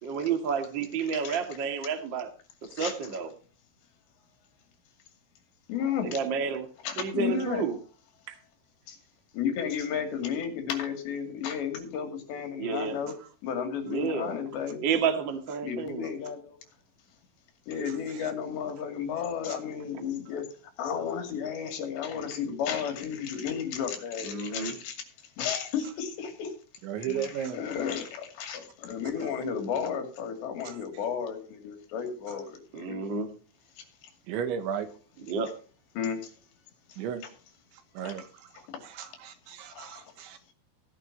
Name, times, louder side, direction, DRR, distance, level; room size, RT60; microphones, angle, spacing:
voice 1, 0.0-2.3 2.7-3.3 6.0-6.7 7.0-7.8 12.6-13.0 13.9-14.4 14.8-16.1 24.2-24.7 32.7-33.3 35.3-35.6, right 6 dB, 50° right, 1.3 m, -30 dB
voice 2, 5.7-6.2 6.8-7.6 8.9-9.0 9.3-13.1 13.4-14.9 15.6-16.6 17.7-20.4 20.8-25.0 25.4-26.5 27.0-33.0 36.0-36.2 38.0-38.1 39.8-39.9, left 7 dB, 65° left, 4.5 m, -33 dB
voice 3, 26.8-27.6 30.7-30.8 34.3-34.9 37.0-37.3 38.0-40.5, right 8 dB, 80° right, 3.7 m, -35 dB
17.0 x 11.0 x 2.8 m
omnidirectional pair, 5.5 m